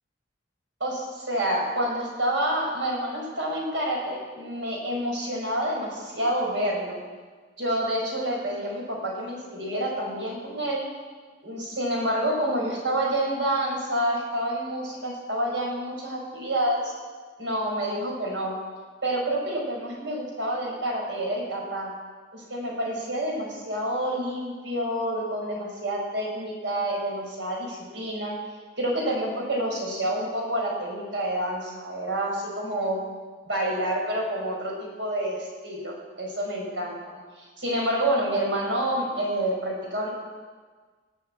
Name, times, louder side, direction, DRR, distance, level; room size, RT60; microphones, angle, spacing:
voice 1, 0.8-7.0 7.6-10.8 11.4-16.9 17.4-18.5 19.0-21.9 22.3-28.4 28.8-33.0 33.5-40.1, right 1 dB, 75° right, -2 dB, 4.7 m, -28 dB
18.5 x 6.9 x 8.5 m, 1.5 s
head